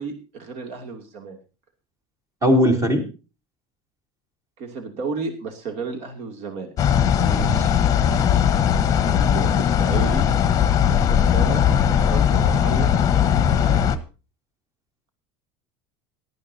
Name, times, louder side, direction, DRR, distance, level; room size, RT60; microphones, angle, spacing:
voice 1, 0.0-1.4 4.6-6.7 9.0-10.3 10.7-13.8, right 4 dB, 50° right, 5 dB, 2.7 m, -33 dB
voice 2, 2.4-3.1 7.2-7.7, equal, 25° right, 4 dB, 3.2 m, -20 dB
sound 1, 6.8-14.0, left 8 dB, 25° left, 1.1 m, -19 dB
18.0 x 12.5 x 2.8 m, 0.33 s
supercardioid pair, 150°, 14 cm